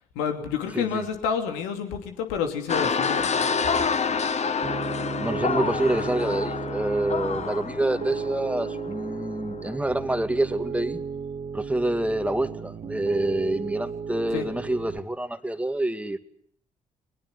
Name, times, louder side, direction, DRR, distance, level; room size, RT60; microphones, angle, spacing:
voice 1, 0.1-3.5 14.3-14.5, left 7 dB, 75° left, 5 dB, 2.9 m, -29 dB
sound 1, 2.7-9.8, left 5 dB, 40° left, 1.4 m, -28 dB
Piano, 4.6-15.0, right 6 dB, 40° right, 1.3 m, -34 dB
voice 2, 5.2-11.0 11.5-16.2, right 1 dB, 5° right, 9 dB, 2.3 m, -27 dB
23.0 x 20.5 x 9.8 m, 0.68 s
figure-of-eight pair, 45°, 18 cm